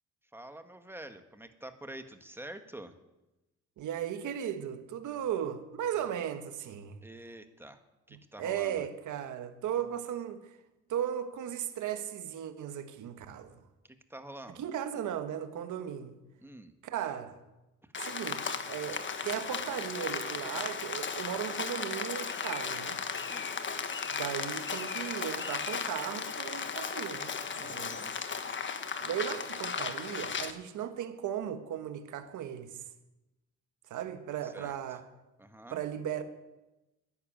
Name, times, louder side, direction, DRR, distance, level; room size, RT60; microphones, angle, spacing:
voice 1, 0.3-2.9 7.0-7.8 8.1-8.8 13.9-14.6 16.4-16.7 17.8-17.9 23.1-23.5 27.6-28.1 34.4-34.8 35.4-35.8, right 1 dB, 10° right, 1.6 m, -47 dB
voice 2, 3.8-7.0 8.1-10.6 10.9-13.6 14.6-16.2 16.8-17.4 18.0-23.0 24.1-28.1 29.0-32.8 33.9-35.0 35.7-36.2, right 10 dB, 80° right, 1.6 m, -36 dB
Rain, 17.9-30.5, left 5 dB, 40° left, 1.4 m, -36 dB
12.5 x 11.0 x 9.0 m
cardioid pair, 90°, 30 cm